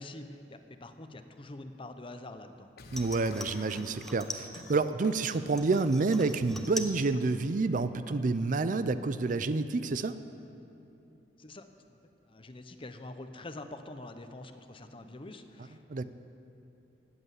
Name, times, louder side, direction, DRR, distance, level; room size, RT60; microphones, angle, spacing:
voice 1, 0.0-2.7 11.4-11.7 12.3-16.1, left 2 dB, 30° left, 8 dB, 0.8 m, -45 dB
sound 1, 2.8-8.6, left 2 dB, 60° left, 1.0 m, -52 dB
sound 2, 2.9-4.8 5.2-7.0 7.3-7.9 8.2-8.3, left 1 dB, ahead, 0.9 m, -43 dB
voice 2, 2.9-10.2 15.9-16.1, right 3 dB, 50° right, 12 dB, 0.5 m, -29 dB
18.5 x 7.9 x 8.2 m, 2.7 s
head